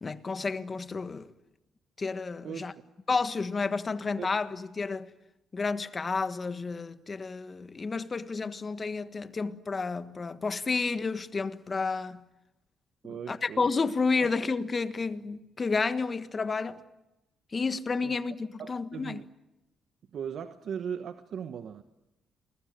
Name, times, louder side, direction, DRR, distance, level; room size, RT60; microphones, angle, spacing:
voice 1, 0.0-1.3 2.0-2.7 3.1-5.1 5.5-12.2 13.3-16.8 17.5-19.2, left 4 dB, 35° left, 1.5 m, -31 dB
voice 2, 2.4-2.7 4.2-4.3 13.0-13.7 14.2-14.3 18.0-18.1 18.6-19.3 20.1-21.8, right 7 dB, 65° right, 1.2 m, -38 dB
28.5 x 21.5 x 9.3 m
cardioid pair, 90°, 0 cm